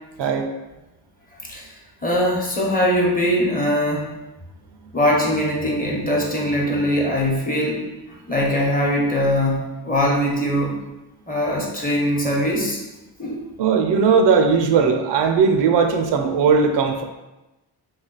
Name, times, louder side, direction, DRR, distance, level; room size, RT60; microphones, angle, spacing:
voice 1, 2.0-4.0 4.9-7.8 8.3-10.7 11.3-12.8 13.2-13.4, equal, 20° left, -2 dB, 0.9 m, -21 dB
voice 2, 13.6-17.0, right 5 dB, 80° right, 5 dB, 0.6 m, -18 dB
3.3 x 2.3 x 3.9 m, 1.0 s
cardioid pair, 85°, 41 cm